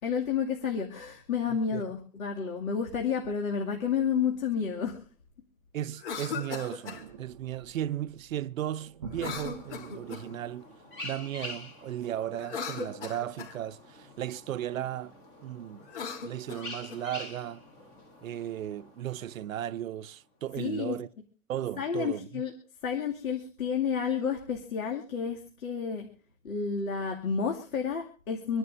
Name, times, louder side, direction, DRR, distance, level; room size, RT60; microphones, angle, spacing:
voice 1, 0.0-5.0 20.6-21.0 21.8-22.5 22.8-26.1 26.4-28.6, left 6 dB, 75° left, 2.4 m, -30 dB
voice 2, 1.5-1.8 5.7-10.7 11.0-15.1 15.4-15.9 16.2-17.6 18.2-21.1 21.5-22.4, right 11 dB, 70° right, 0.6 m, -35 dB
Cough, 5.9-7.0 9.1-10.4 12.3-13.6 15.8-17.0, left 5 dB, 55° left, 3.4 m, -38 dB
sound 1, 6.9-11.0, right 5 dB, 30° right, 0.5 m, -48 dB
sound 2, 9.1-20.1, left 2 dB, 10° left, 0.8 m, -47 dB
26.5 x 11.0 x 2.6 m
hypercardioid pair, 170°, 42 cm